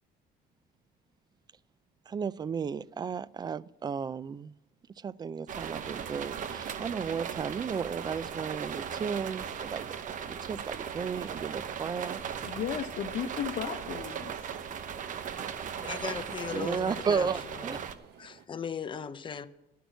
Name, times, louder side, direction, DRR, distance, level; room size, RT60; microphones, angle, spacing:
voice 1, 2.1-4.5 5.0-9.8 10.3-12.2 16.5-17.8, right 6 dB, 25° right, 0.3 m, -34 dB
sound 1, 5.5-18.0, right 7 dB, 50° right, 0.8 m, -38 dB
sound 2, 5.7-18.5, right 9 dB, 75° right, 0.8 m, -53 dB
voice 2, 12.4-14.4, left 8 dB, 55° left, 0.9 m, -35 dB
voice 3, 15.8-17.9 18.2-19.5, left 7 dB, 30° left, 0.7 m, -38 dB
11.0 x 6.1 x 9.2 m
cardioid pair, 110°, 17 cm